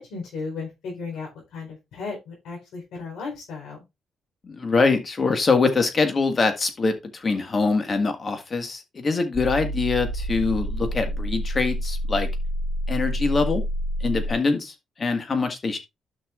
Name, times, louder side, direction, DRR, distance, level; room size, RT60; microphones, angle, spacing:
voice 1, 0.0-3.8, left 4 dB, 80° left, 4.2 m, -35 dB
voice 2, 4.4-12.3 12.9-13.6 14.0-15.8, left 4 dB, 35° left, 1.8 m, -24 dB
sound 1, 9.3-14.3, equal, 5° right, 2.1 m, -28 dB
12.0 x 6.0 x 2.5 m
cardioid pair, 90°, 0 cm